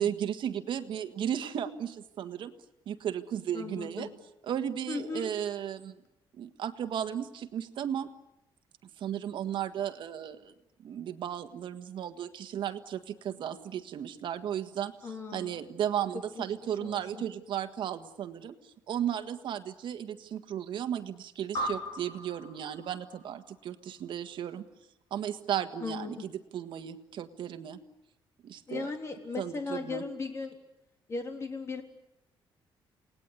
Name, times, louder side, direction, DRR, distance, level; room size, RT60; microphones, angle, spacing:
voice 1, 0.0-2.5 2.8-4.1 4.5-6.0 6.3-8.1 9.0-10.5 10.8-24.6 25.1-27.8 28.4-28.9 29.4-30.0, right 9 dB, 65° right, 8 dB, 1.7 m, -35 dB
voice 2, 3.5-4.1 4.9-5.3 15.0-15.6 16.4-16.5 16.8-17.2 25.8-26.3 28.7-30.6 31.1-31.8, left 4 dB, 30° left, 4 dB, 3.5 m, -37 dB
sound 1, 21.5-24.3, equal, 50° left, 4.6 m, -39 dB
28.5 x 19.5 x 9.7 m, 0.90 s
cardioid pair, 165°, 9 cm